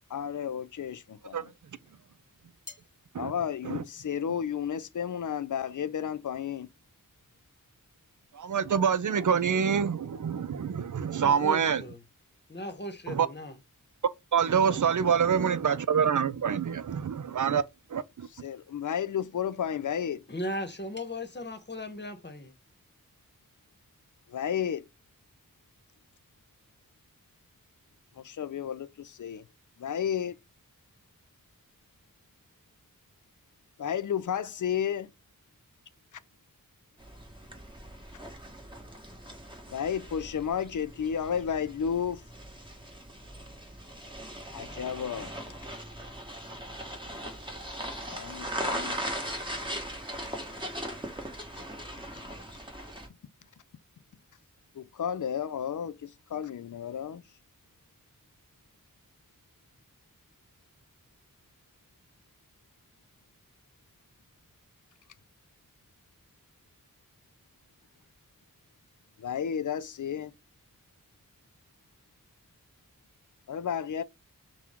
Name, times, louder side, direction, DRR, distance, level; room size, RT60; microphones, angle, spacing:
voice 1, 0.1-1.5 3.2-6.7 18.4-20.2 24.3-24.9 28.2-29.5 29.8-30.4 33.8-35.1 39.7-42.2 44.5-45.3 48.1-49.0 54.7-57.2 69.2-70.3 73.5-74.0, left 8 dB, 60° left, 0.5 m, -32 dB
voice 2, 8.3-11.8 13.1-13.3 14.3-17.6 17.9-18.3, right 7 dB, 60° right, 0.5 m, -26 dB
voice 3, 11.2-12.0 12.5-13.5 20.3-22.5, left 1 dB, 30° left, 1.1 m, -37 dB
sound 1, 37.0-53.1, equal, 15° right, 1.5 m, -39 dB
5.9 x 2.3 x 3.6 m
wide cardioid pair, 50°, 34 cm